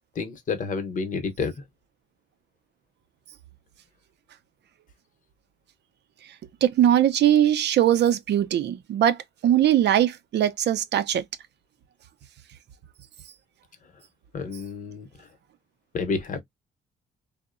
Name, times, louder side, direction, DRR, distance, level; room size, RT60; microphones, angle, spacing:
voice 1, 0.2-1.5 14.3-15.3 15.9-16.4, left 4 dB, 40° left, 0.8 m, -30 dB
voice 2, 6.6-11.2, right 11 dB, 60° right, 0.5 m, -21 dB
2.6 x 2.1 x 2.4 m
cardioid pair, 90°, 20 cm